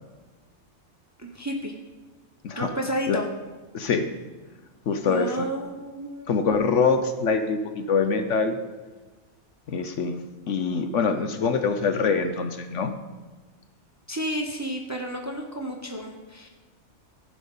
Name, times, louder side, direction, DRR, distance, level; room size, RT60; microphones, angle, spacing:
voice 1, 1.2-1.7 2.6-3.3 5.0-6.4 14.1-16.5, equal, 15° right, 1 dB, 0.8 m, -31 dB
voice 2, 3.7-4.1 4.9-5.5 6.3-8.6 9.7-12.9, left 5 dB, 65° left, 7 dB, 1.0 m, -24 dB
15.0 x 5.3 x 5.6 m, 1.3 s
omnidirectional pair, 1.5 m